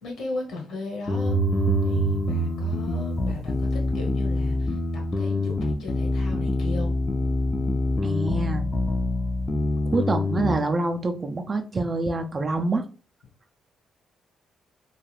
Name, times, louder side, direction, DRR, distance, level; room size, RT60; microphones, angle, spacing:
voice 1, 0.0-1.4 1.8-7.0, left 2 dB, 80° left, 0 dB, 1.1 m, -36 dB
sound 1, 1.1-10.6, left 2 dB, 25° left, 0.4 m, -26 dB
sound 2, 1.1-4.0, right 12 dB, 90° right, 0.4 m, -28 dB
voice 2, 8.0-8.7 9.9-12.8, right 2 dB, 35° right, 6 dB, 0.4 m, -26 dB
2.4 x 2.4 x 3.2 m, 0.37 s
cardioid pair, 90°, 0 cm